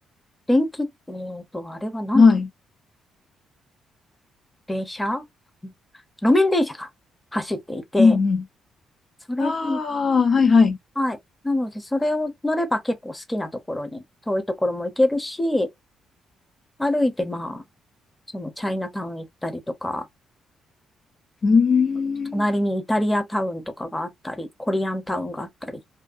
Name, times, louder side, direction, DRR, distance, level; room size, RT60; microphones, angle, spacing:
voice 1, 0.5-2.2 4.7-5.2 5.6-5.7 6.2-6.9 7.3-8.2 9.3-9.8 11.0-11.2 11.4-15.7 16.8-17.6 18.3-20.0 22.3-25.8, left 1 dB, 10° left, 0.6 m, -25 dB
voice 2, 2.1-2.5 8.0-8.4 9.4-10.8 21.4-22.4, left 4 dB, 45° left, 0.3 m, -18 dB
2.5 x 2.3 x 2.4 m
cardioid pair, 90°, 0 cm